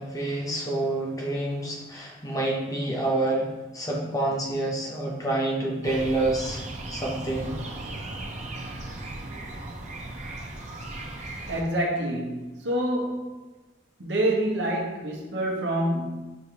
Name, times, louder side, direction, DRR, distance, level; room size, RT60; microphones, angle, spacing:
voice 1, 0.0-3.5 3.7-6.6 6.9-7.6, right 2 dB, 20° left, -2 dB, 0.7 m, -28 dB
sound 1, 5.8-11.6, right 2 dB, 40° right, 0.5 m, -36 dB
voice 2, 11.5-13.4 14.0-16.4, right 1 dB, 70° right, -1 dB, 0.9 m, -27 dB
6.4 x 2.6 x 2.9 m, 1.1 s
head